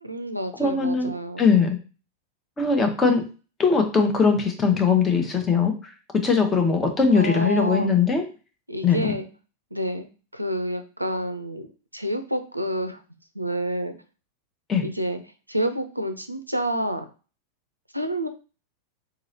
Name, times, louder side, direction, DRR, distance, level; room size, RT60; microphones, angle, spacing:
voice 1, 0.0-1.5 7.1-7.9 8.7-9.3 9.7-10.1 10.3-13.0 13.3-13.9 14.8-15.2 15.5-17.1 17.9-18.3, right 1 dB, 90° right, 8 dB, 0.4 m, -28 dB
voice 2, 0.6-1.1 1.4-1.8 2.6-3.2 3.6-5.7 6.1-8.2 8.8-9.1 14.7-14.8, left 5 dB, 15° left, 4 dB, 0.8 m, -20 dB
3.9 x 3.0 x 2.6 m, 0.34 s
figure-of-eight pair, 90°, 0 cm